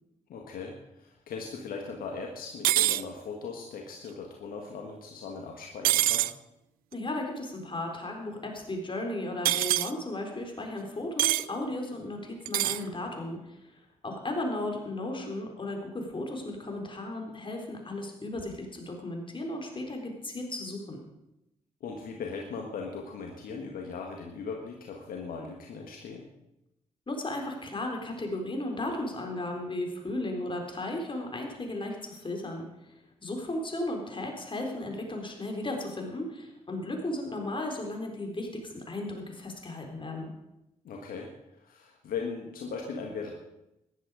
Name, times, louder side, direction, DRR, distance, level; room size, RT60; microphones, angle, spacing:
voice 1, 0.3-6.3 21.8-26.2 40.8-43.3, left 5 dB, 70° left, 1 dB, 1.7 m, -39 dB
sound 1, 2.6-3.0 5.8-6.3 9.5-9.9 11.2-11.5 12.5-12.8, right 15 dB, 75° right, 0.4 m, -24 dB
voice 2, 6.9-13.6 14.0-21.0 27.1-32.6 33.2-40.3, left 1 dB, 35° left, 2 dB, 4.0 m, -35 dB
14.0 x 11.0 x 5.0 m, 0.89 s
hypercardioid pair, 45°, 15 cm